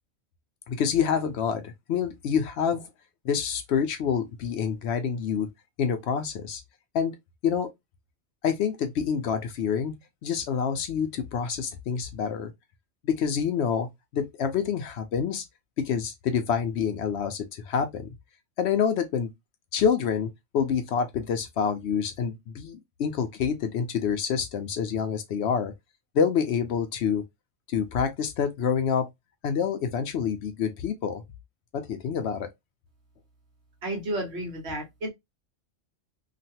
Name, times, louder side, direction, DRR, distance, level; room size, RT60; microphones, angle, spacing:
voice 1, 0.7-2.9 3.2-5.5 5.8-6.6 6.9-7.2 7.4-7.7 8.4-9.9 10.2-12.5 13.0-15.4 15.8-18.1 18.6-19.3 19.7-20.3 20.5-25.7 26.1-27.2 27.7-29.1 29.4-31.2 31.7-32.5, left 7 dB, 65° left, 0.8 m, -27 dB
voice 2, 33.8-35.1, right 1 dB, 60° right, 1.3 m, -32 dB
3.0 x 2.4 x 2.7 m
omnidirectional pair, 1.3 m